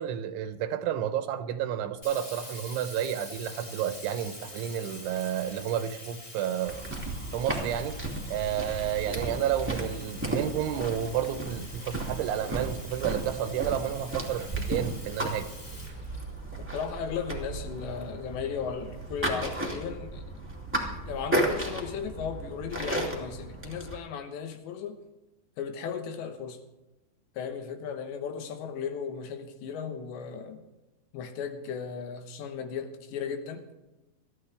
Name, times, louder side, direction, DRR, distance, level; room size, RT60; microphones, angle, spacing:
voice 1, 0.0-6.8 7.3-8.0 8.3-15.5, right 10 dB, 85° right, 10 dB, 3.4 m, -31 dB
Sink (filling or washing), 2.0-16.8, left 1 dB, 15° left, 2.5 m, -46 dB
sound 1, 6.7-24.0, right 1 dB, 5° right, 1.1 m, -34 dB
voice 2, 16.7-20.2 21.1-25.0 25.6-26.6 27.4-30.6 31.1-33.6, left 6 dB, 75° left, 6 dB, 3.4 m, -36 dB
22.5 x 14.0 x 3.5 m, 1.0 s
omnidirectional pair, 5.3 m